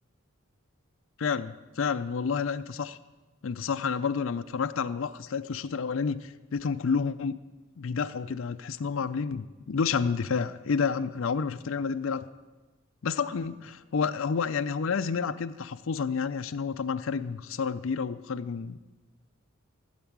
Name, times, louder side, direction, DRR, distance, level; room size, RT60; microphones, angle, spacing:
voice 1, 1.2-3.0 3.4-7.4 7.8-12.2 13.0-18.8, left 5 dB, 70° left, 10 dB, 0.4 m, -30 dB
15.0 x 8.1 x 6.1 m, 1.2 s
head